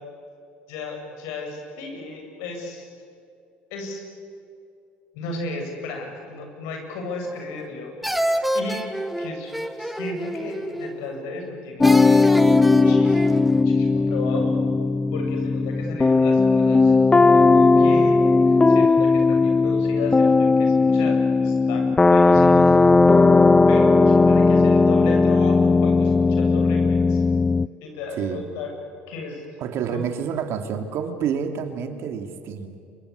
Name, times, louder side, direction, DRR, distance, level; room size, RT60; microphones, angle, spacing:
voice 1, 0.7-2.9 3.7-4.0 5.1-8.2 8.5-8.8 9.2-14.6 15.1-22.7 23.7-27.2 27.8-28.7 29.1-29.4 29.9-30.0, left 3 dB, 70° left, 3 dB, 7.7 m, -34 dB
sound 1, 7.2-7.7 8.0-11.1 11.8-13.6, right 1 dB, ahead, 2.0 m, -28 dB
sound 2, 11.8-27.7, left 3 dB, 15° left, 0.6 m, -17 dB
voice 2, 29.6-32.8, right 7 dB, 60° right, 6 dB, 3.0 m, -28 dB
27.5 x 25.0 x 8.5 m, 2.5 s
hypercardioid pair, 75°, 5 cm